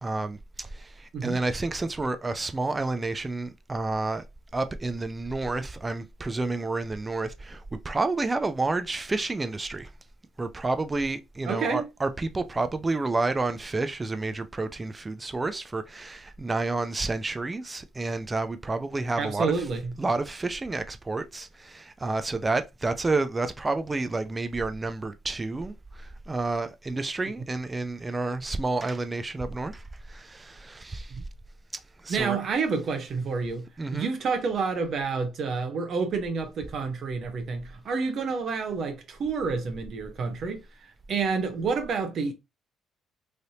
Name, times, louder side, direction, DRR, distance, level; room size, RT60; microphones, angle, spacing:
voice 1, 0.0-4.2 4.5-9.9 10.4-19.5 20.0-31.1 32.0-32.4 33.8-34.1, right 3 dB, 20° right, 0.4 m, -30 dB
voice 2, 11.5-11.9 19.2-19.9 32.1-40.6 41.1-42.3, right 4 dB, 60° right, 0.7 m, -29 dB
3.2 x 2.7 x 2.7 m
cardioid pair, 100°, 0 cm